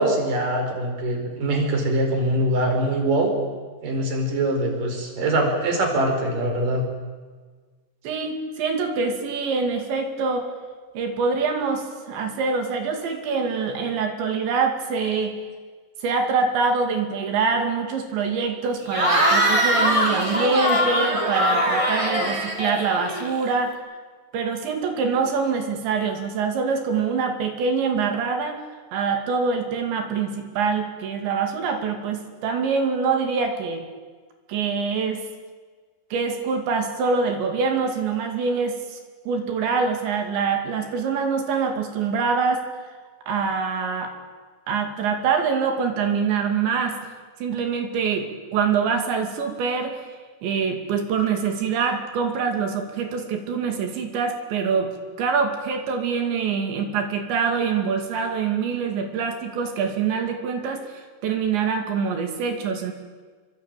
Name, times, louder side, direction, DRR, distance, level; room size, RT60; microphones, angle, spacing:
voice 1, 0.0-3.3 3.8-6.9, right 1 dB, 45° right, 4 dB, 6.3 m, -23 dB
voice 2, 8.0-10.5 10.9-15.4 16.0-23.8 24.3-28.6 28.9-33.9 34.5-35.2 36.1-39.0 39.3-42.6 43.3-44.1 44.7-47.0 47.4-50.1 50.4-54.9 55.2-62.9, right 5 dB, 70° right, 5 dB, 4.7 m, -25 dB
Cheering / Crowd, 18.9-23.5, equal, 5° right, 3.3 m, -22 dB
28.0 x 22.5 x 9.0 m, 1.5 s
omnidirectional pair, 5.5 m